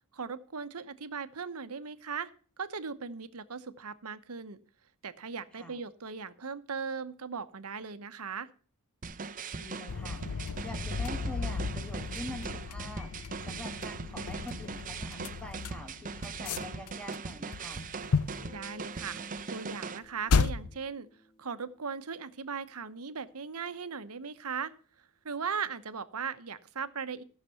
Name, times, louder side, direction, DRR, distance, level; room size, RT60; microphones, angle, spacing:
voice 1, 0.1-2.3 2.6-4.6 5.0-8.5 18.5-19.2 19.5-21.1 21.4-24.7 25.2-27.2, right 5 dB, 80° right, 12 dB, 1.0 m, -38 dB
sound 1, 9.0-20.0, right 4 dB, 35° right, 0.6 m, -40 dB
voice 2, 9.5-17.8, left 1 dB, 5° left, 5 dB, 1.6 m, -45 dB
sound 2, 9.9-17.2 17.5-18.5 19.4-19.5 20.3-20.8, left 5 dB, 80° left, 0.6 m, -33 dB
Guitar, 18.2-23.7, left 2 dB, 25° left, 5.3 m, -58 dB
14.0 x 6.7 x 5.7 m, 0.42 s
head